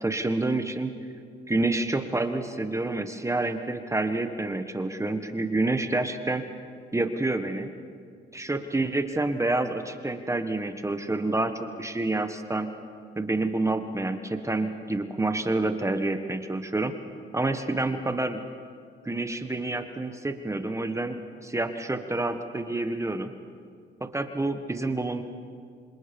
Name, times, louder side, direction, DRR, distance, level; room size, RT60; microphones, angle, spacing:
voice 1, 0.0-0.9 1.5-6.4 6.9-7.7 8.3-11.5 11.8-12.7 13.2-16.9 17.3-18.4 19.0-23.3 24.0-25.2, right 2 dB, 15° right, 8 dB, 1.4 m, -28 dB
27.0 x 26.0 x 5.3 m, 2.2 s
cardioid pair, 90°, 20 cm